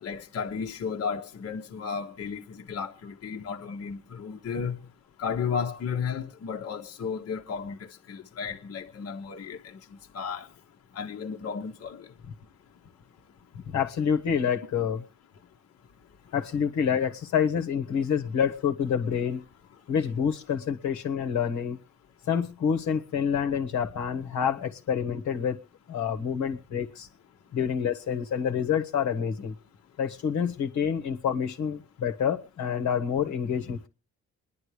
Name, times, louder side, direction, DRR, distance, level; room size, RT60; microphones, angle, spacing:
voice 1, 0.0-4.8 5.2-10.5 10.9-12.1, left 6 dB, 50° left, 1.3 m, -34 dB
voice 2, 13.7-15.0 16.3-19.5 19.9-21.8 22.3-25.6 25.9-27.1 27.5-29.5 30.0-33.9, left 7 dB, 70° left, 1.4 m, -27 dB
27.5 x 10.5 x 3.3 m
cardioid pair, 90°, 30 cm